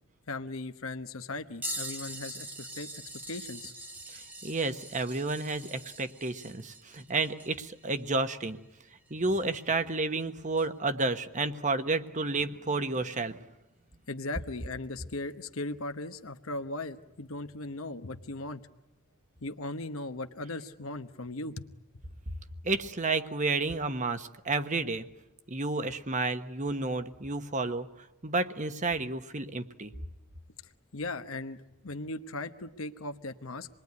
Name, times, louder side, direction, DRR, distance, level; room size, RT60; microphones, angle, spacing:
voice 1, 0.3-2.9 3.3-3.7 14.1-18.6 19.4-21.6 30.9-31.6 31.8-33.7, left 2 dB, 65° left, 8 dB, 1.1 m, -38 dB
sound 1, 1.6-9.8 10.6-10.7 12.9-13.0 14.1-14.2 15.3-15.4, right 1 dB, 10° right, 1.1 m, -43 dB
voice 2, 4.4-8.6 9.1-13.4 22.6-25.0 25.5-27.9 28.2-29.9, right 3 dB, 35° right, 10 dB, 1.2 m, -31 dB
27.0 x 21.0 x 9.6 m, 0.96 s
head